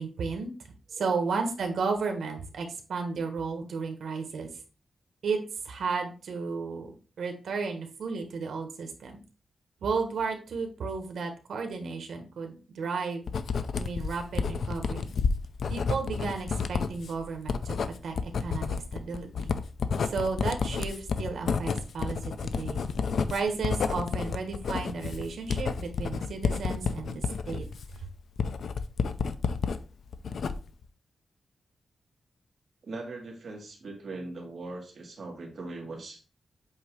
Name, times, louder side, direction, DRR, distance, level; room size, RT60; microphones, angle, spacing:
voice 1, 0.0-4.5 5.2-9.2 9.8-13.3 13.8-15.1 15.7-17.7 18.0-19.5 20.0-22.9 23.3-27.7 28.0-28.1, right 4 dB, 85° right, 5 dB, 1.4 m, -33 dB
Writing, 13.3-29.8 30.1-30.8, left 5 dB, 65° left, 0.5 m, -30 dB
voice 2, 32.8-36.2, right 2 dB, 55° right, 0 dB, 2.1 m, -40 dB
8.2 x 2.8 x 4.7 m, 0.36 s
wide cardioid pair, 160°, 0 cm